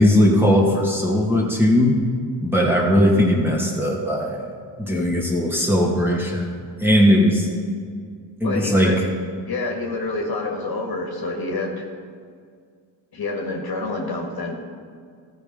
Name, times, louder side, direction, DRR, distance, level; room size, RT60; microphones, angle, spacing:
voice 1, 0.0-1.9 2.4-4.4 4.8-7.5 8.4-8.9, left 1 dB, 5° right, -3 dB, 2.3 m, -18 dB
voice 2, 8.4-9.0 9.5-11.9 13.1-14.5, left 3 dB, 45° left, 1 dB, 1.8 m, -27 dB
14.5 x 5.4 x 5.4 m, 2.1 s
cardioid pair, 65°, 49 cm